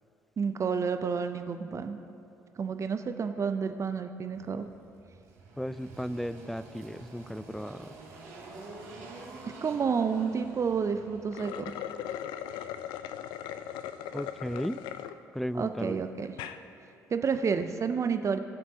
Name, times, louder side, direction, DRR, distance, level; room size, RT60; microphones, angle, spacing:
voice 1, 0.4-2.0 2.6-4.7 9.6-11.7 15.5-16.4 17.1-18.4, right 6 dB, 40° right, 9 dB, 0.6 m, -30 dB
Engine, 4.3-11.7, right 2 dB, 70° right, 2.4 m, -48 dB
voice 2, 5.6-7.9 14.1-14.8 15.3-16.0, equal, ahead, 14 dB, 0.4 m, -35 dB
sound 1, 11.2-15.1 15.6-15.7 16.2-16.6, left 10 dB, 65° left, 0.4 m, -39 dB
19.5 x 7.5 x 2.9 m, 2.9 s
hypercardioid pair, 50°, 8 cm